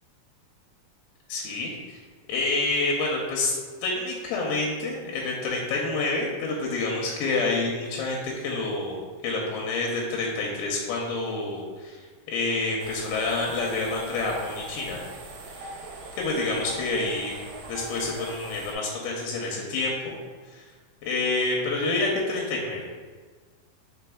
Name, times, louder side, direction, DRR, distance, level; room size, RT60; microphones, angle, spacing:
voice 1, 1.3-2.0 2.3-3.5 3.8-15.1 16.1-20.1 20.5-20.7 21.0-22.9, left 3 dB, 85° left, -2 dB, 2.5 m, -28 dB
sound 1, 12.8-18.7, right 2 dB, 85° right, 2.5 m, -41 dB
5.0 x 4.1 x 2.3 m, 1.5 s
omnidirectional pair, 4.4 m